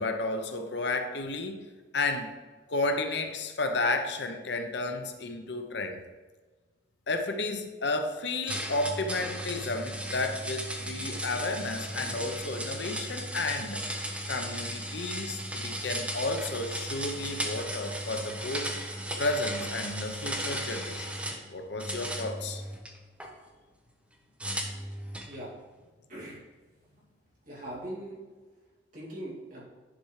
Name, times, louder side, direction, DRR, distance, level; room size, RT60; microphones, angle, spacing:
voice 1, 0.0-1.6 1.9-2.3 2.7-6.0 7.1-13.8 14.3-18.7 19.2-21.1 21.5-22.6, left 2 dB, 70° left, 6 dB, 0.8 m, -32 dB
sound 1, 8.5-21.4 21.8-23.3 24.4-25.3, right 1 dB, 5° right, 1.0 m, -36 dB
voice 2, 26.1-26.4 27.5-28.2 28.9-29.6, right 1 dB, 50° right, -6 dB, 2.9 m, -40 dB
10.0 x 4.6 x 4.8 m, 1.3 s
head